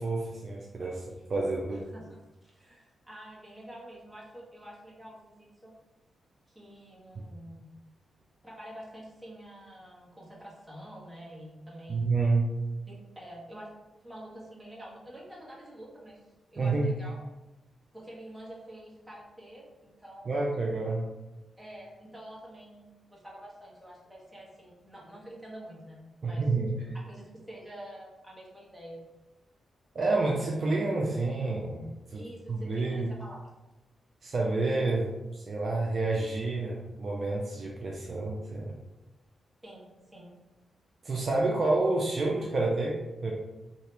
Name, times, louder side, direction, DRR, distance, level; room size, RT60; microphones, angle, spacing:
voice 1, 0.0-1.8 7.2-7.3 11.9-12.5 16.6-16.9 20.3-21.0 26.2-26.7 29.9-33.1 34.2-38.7 41.0-43.3, right 3 dB, 50° right, -2 dB, 0.5 m, -29 dB
voice 2, 1.7-5.7 6.5-7.7 8.4-12.0 12.9-13.7 14.0-16.2 16.5-17.2 17.9-20.7 21.6-26.4 27.1-29.0 32.1-33.4 39.6-40.3, right 1 dB, 10° right, -5 dB, 1.3 m, -47 dB
2.8 x 2.7 x 3.3 m, 1.0 s
cardioid pair, 70°, 0 cm